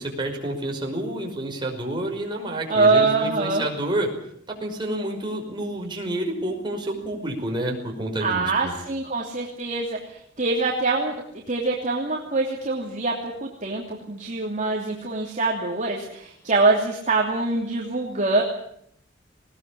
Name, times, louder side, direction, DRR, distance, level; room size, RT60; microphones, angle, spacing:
voice 1, 0.0-4.1 4.5-8.7, right 1 dB, 25° right, 1 dB, 5.5 m, -29 dB
voice 2, 2.7-3.6 8.2-10.0 10.4-11.1 11.5-18.4, right 3 dB, 40° right, -1 dB, 2.9 m, -24 dB
20.5 x 19.0 x 8.7 m, 0.68 s
head